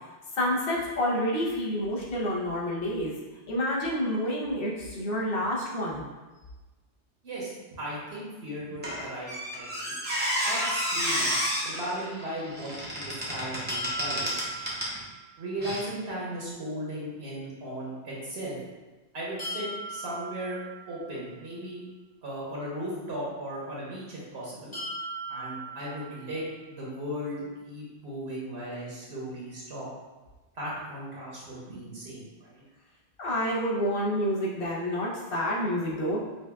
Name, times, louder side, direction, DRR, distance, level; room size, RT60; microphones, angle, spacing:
voice 1, 0.3-3.1 3.5-6.1 33.2-36.2, equal, 60° left, -5 dB, 1.0 m, -28 dB
voice 2, 7.2-10.0 10.5-11.3 11.6-14.4 15.4-18.6 19.1-20.6 20.9-21.8 22.2-24.7 25.3-26.4 26.7-29.9 30.5-32.6, right 1 dB, 75° right, -6 dB, 1.2 m, -37 dB
Squeak, 8.8-15.0 15.6-15.8, equal, 10° right, 0.7 m, -31 dB
sound 1, 13.7-15.6 19.4-21.5 24.7-26.8, right 1 dB, 30° left, 0.9 m, -39 dB
5.3 x 2.4 x 2.3 m, 1.2 s
omnidirectional pair, 1.1 m